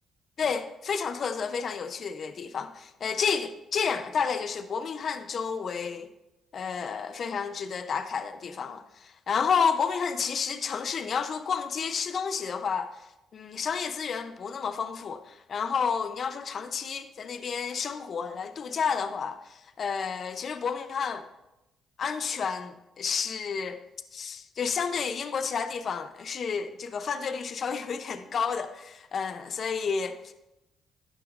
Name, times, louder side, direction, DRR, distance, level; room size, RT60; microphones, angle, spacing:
voice 1, 0.4-6.1 6.5-13.1 13.3-21.2 22.0-23.8 24.1-30.3, left 6 dB, 55° left, 0.6 m, -31 dB
11.5 x 9.0 x 2.5 m
cardioid pair, 90°, 0 cm